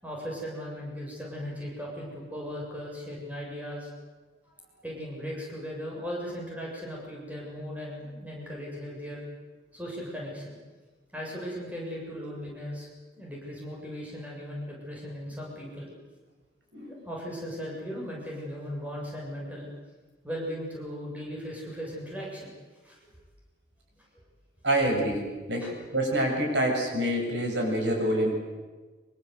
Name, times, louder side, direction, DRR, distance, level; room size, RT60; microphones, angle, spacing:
voice 1, 0.0-3.9 4.8-9.2 9.7-10.6 11.1-12.9 13.2-15.9 17.0-19.7 20.2-22.5 22.8-23.0 23.9-24.0 25.6-25.7, equal, 10° right, -3 dB, 7.3 m, -37 dB
voice 2, 24.6-28.3, right 1 dB, 85° right, 1 dB, 7.5 m, -27 dB
25.5 x 24.0 x 8.2 m, 1.3 s
head